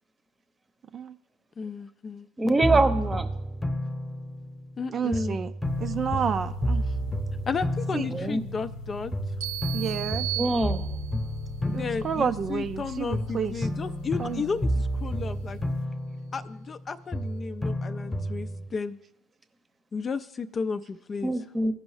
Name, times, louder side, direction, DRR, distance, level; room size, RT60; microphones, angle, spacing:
voice 1, 1.6-2.3 4.8-5.4 7.5-9.1 11.6-15.6 16.3-19.0 19.9-21.3, left 5 dB, 35° left, 11 dB, 0.4 m, -33 dB
voice 2, 2.4-3.3 8.1-8.4 10.4-10.8 21.2-21.7, right 2 dB, 20° right, 9 dB, 0.8 m, -24 dB
sound 1, 2.6-4.8 5.1-8.8 9.1-12.8 13.1-16.8 17.1-18.7, equal, 15° left, 1.0 m, -31 dB
voice 3, 4.9-5.5 5.8-6.9 7.9-8.1 9.7-10.3 11.7-13.7 14.2-14.4, right 7 dB, 40° right, 9 dB, 0.4 m, -30 dB
sound 2, 5.6-15.9, left 2 dB, 75° left, 0.8 m, -41 dB
sound 3, 9.4-11.3, right 18 dB, 90° right, 0.6 m, -35 dB
15.5 x 5.2 x 3.2 m, 0.83 s
hypercardioid pair, 70°, 0 cm